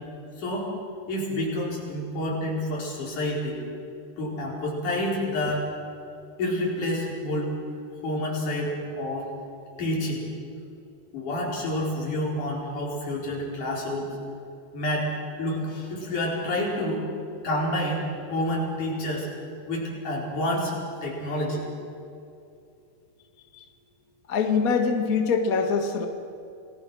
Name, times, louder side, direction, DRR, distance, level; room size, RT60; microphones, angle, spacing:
voice 1, 0.4-0.7 1.1-3.6 4.2-5.7 6.4-7.6 8.0-9.3 9.8-10.3 11.1-14.1 14.7-15.1 15.4-17.0 17.4-19.3 19.7-20.7 21.0-21.7, left 1 dB, 65° left, -3 dB, 6.2 m, -28 dB
voice 2, 24.3-26.1, left 5 dB, 40° left, 4 dB, 1.4 m, -23 dB
28.0 x 19.5 x 6.3 m, 2.5 s
omnidirectional pair, 3.8 m